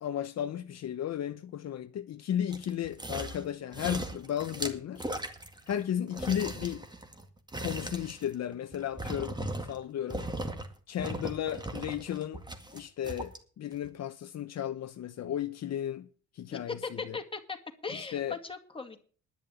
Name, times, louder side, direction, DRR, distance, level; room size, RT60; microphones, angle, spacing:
voice 1, 0.0-5.0 5.7-6.8 7.6-10.3 10.9-12.4 12.7-16.1 16.3-17.2 17.9-18.4, left 10 dB, 60° left, 0.9 m, -34 dB
sound 1, 2.5-3.5 3.7-5.8 6.1-9.8 10.1-10.7 11.0-13.4 13.8-13.9, right 1 dB, 15° right, 2.0 m, -38 dB
voice 2, 16.5-17.6 17.8-19.0, left 4 dB, 15° left, 2.3 m, -38 dB
11.0 x 6.8 x 9.0 m
cardioid pair, 90°, 30 cm